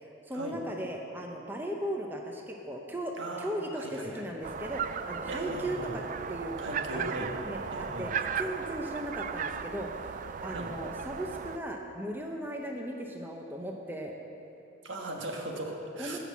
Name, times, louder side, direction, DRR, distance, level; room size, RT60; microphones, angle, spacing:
voice 1, 0.0-6.0 6.3-6.6 6.9-14.1 16.0-16.2, right 1 dB, 10° right, 1 dB, 0.6 m, -37 dB
voice 2, 3.2-4.2 5.3-5.9 6.6-7.4 7.7-8.1 10.4-10.7 14.8-16.2, right 1 dB, 70° right, 1 dB, 1.4 m, -38 dB
sound 1, 4.4-11.6, right 6 dB, 40° right, 0.3 m, -36 dB
12.5 x 6.0 x 7.4 m, 2.8 s
head